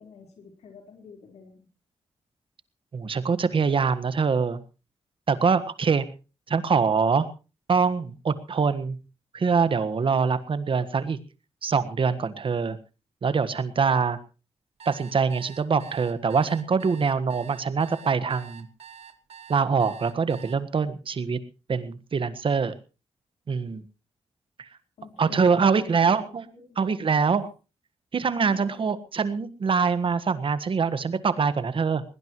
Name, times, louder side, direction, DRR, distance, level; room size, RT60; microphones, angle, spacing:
voice 1, 0.0-1.7 25.0-26.8 27.3-27.4 28.4-28.8, left 5 dB, 85° left, 2 dB, 4.4 m, -49 dB
voice 2, 2.9-4.6 5.3-6.1 6.5-7.2 7.7-9.0 9.3-11.2 11.6-12.8 13.2-14.2 14.8-18.7 19.5-21.4 21.7-22.7 23.5-23.8 25.2-26.4 26.8-27.5 28.1-32.0, right 5 dB, 55° right, 13 dB, 1.5 m, -24 dB
sound 1, 14.8-20.6, right 8 dB, 75° right, 1.3 m, -47 dB
20.5 x 18.5 x 3.1 m, 0.33 s
cardioid pair, 85°, 11 cm